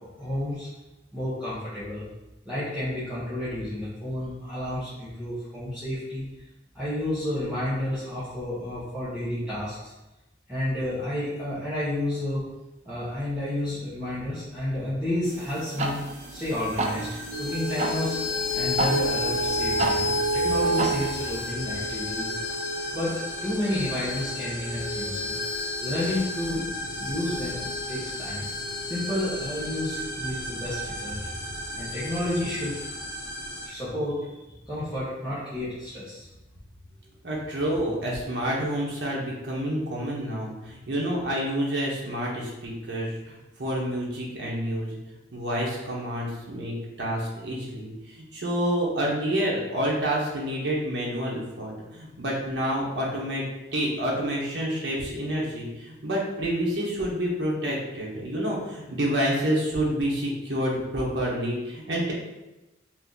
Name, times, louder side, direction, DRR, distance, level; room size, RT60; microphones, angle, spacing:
voice 1, 0.1-0.7 1.1-2.0 2.5-6.3 6.7-9.9 10.5-12.4 12.9-16.0 16.3-17.1 17.4-18.2 18.5-22.4 22.9-25.3 25.8-26.7 27.0-28.5 28.8-31.2 31.8-32.8 33.6-34.4 34.7-36.3, left 1 dB, 5° right, -13 dB, 0.7 m, -31 dB
sound 1, 15.2-21.5, right 2 dB, 40° right, 0.3 m, -33 dB
sound 2, 15.7-33.7, equal, 50° left, 0.9 m, -36 dB
sound 3, 17.3-32.1, left 1 dB, 85° left, 0.3 m, -31 dB
voice 2, 37.2-45.0 45.3-53.4 53.7-62.1, equal, 65° right, -4 dB, 0.8 m, -28 dB
2.8 x 2.5 x 3.6 m, 1.0 s
head